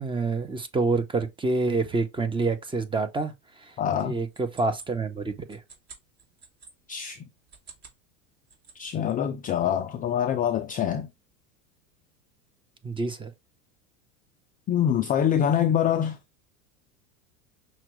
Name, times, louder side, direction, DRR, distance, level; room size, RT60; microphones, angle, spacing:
voice 1, 0.0-3.3 3.6-3.7 4.0-5.6 12.8-13.3, right 3 dB, 10° right, 0.7 m, -27 dB
voice 2, 3.8-4.2 6.9-7.3 8.7-11.1 14.7-16.2, left 9 dB, 20° left, 0.4 m, -25 dB
sound 1, 3.9-6.7 7.4-8.0 8.3-9.1, right 5 dB, 40° right, 2.3 m, -50 dB
5.7 x 2.4 x 3.1 m
hypercardioid pair, 105°, 43 cm